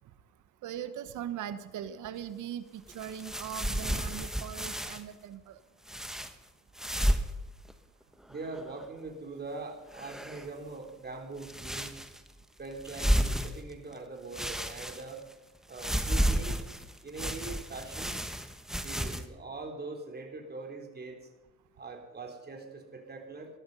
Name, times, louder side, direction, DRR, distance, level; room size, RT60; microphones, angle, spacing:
voice 1, 0.6-5.6, right 10 dB, 80° right, 12 dB, 1.2 m, -40 dB
sound 1, 2.9-5.0 5.9-6.3 6.8-7.4 7.7-7.8 8.2-8.9 9.9-10.6 11.4-12.3 12.8-13.9 14.3-15.3 15.7-19.3, equal, ahead, 1.3 m, -32 dB
voice 2, 8.3-12.0 12.6-15.2 15.7-16.6 17.0-18.2 18.7-21.2 21.8-23.5, right 3 dB, 35° right, 3 dB, 3.8 m, -42 dB
18.5 x 13.0 x 5.5 m, 1.1 s
cardioid pair, 90°, 30 cm